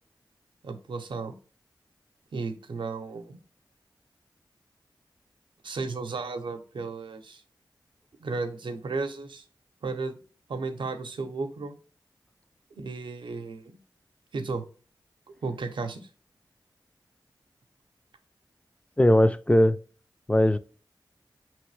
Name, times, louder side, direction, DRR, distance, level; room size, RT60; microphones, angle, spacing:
voice 1, 0.6-1.3 2.3-3.4 5.6-7.4 8.2-9.4 9.8-10.2 10.5-11.8 12.7-13.7 14.3-14.6 15.4-16.1, right 3 dB, 90° right, 0.6 m, -34 dB
voice 2, 19.0-19.8 20.3-20.6, left 1 dB, 15° left, 0.4 m, -19 dB
5.3 x 3.0 x 3.1 m
cardioid pair, 45°, 8 cm